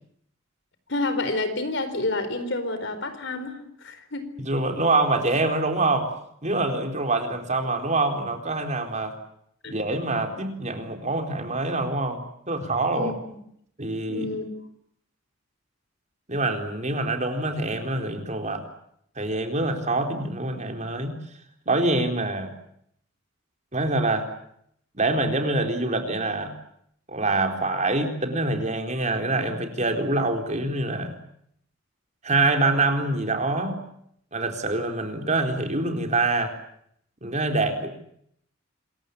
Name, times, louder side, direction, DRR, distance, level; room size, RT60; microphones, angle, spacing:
voice 1, 0.9-4.3 9.6-9.7 12.9-13.3 14.1-14.5, left 2 dB, 60° left, 10 dB, 4.4 m, -29 dB
voice 2, 4.4-6.1 6.4-9.1 9.7-13.1 13.8-14.3 16.3-18.7 19.2-21.2 21.7-22.5 23.7-24.3 24.9-26.5 27.1-31.1 32.2-33.8 34.3-36.5 37.2-38.0, right 2 dB, 35° right, 5 dB, 4.1 m, -25 dB
27.0 x 23.5 x 8.4 m, 0.71 s
head